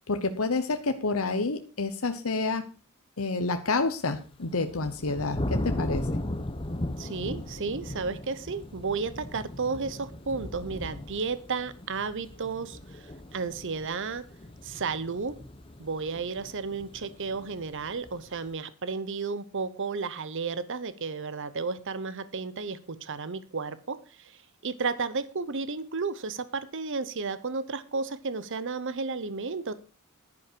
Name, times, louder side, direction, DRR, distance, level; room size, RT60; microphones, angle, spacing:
voice 1, 0.1-2.6 3.2-6.2, left 3 dB, 70° left, 7 dB, 1.0 m, -29 dB
sound 1, 4.2-18.5, left 1 dB, 25° left, 1.0 m, -37 dB
voice 2, 7.0-14.2 14.6-15.4 15.8-29.7, right 4 dB, 60° right, 14 dB, 0.9 m, -33 dB
11.0 x 9.9 x 4.6 m, 0.33 s
head